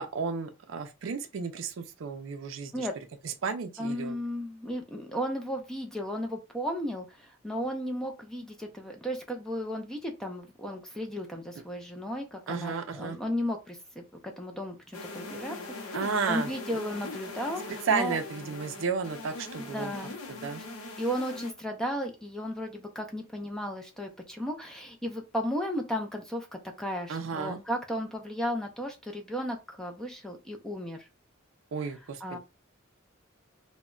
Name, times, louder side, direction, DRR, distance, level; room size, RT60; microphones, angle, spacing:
voice 1, 0.0-2.9 3.2-4.2 12.5-13.2 15.9-16.8 17.9-19.9 20.3-20.6 27.1-27.6 31.7-32.4, right 5 dB, 65° right, 0.4 m, -33 dB
voice 2, 3.8-14.0 14.4-18.2 19.6-20.2 21.0-26.5 26.8-31.1 32.2-32.4, equal, 5° left, 0.4 m, -34 dB
sound 1, 14.9-21.5, left 2 dB, 90° left, 0.6 m, -41 dB
2.1 x 2.1 x 3.6 m
head